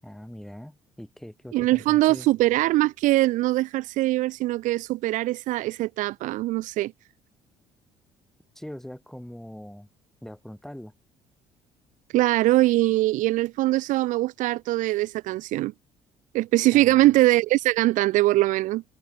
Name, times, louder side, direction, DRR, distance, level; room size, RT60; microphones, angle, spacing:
voice 1, 0.0-2.3 8.5-9.9 10.2-10.9 16.7-17.1, equal, 5° left, 5.0 m, -42 dB
voice 2, 1.5-6.9 12.1-15.7 16.3-18.8, right 17 dB, 75° right, 0.9 m, -22 dB
supercardioid pair, 85°, 13 cm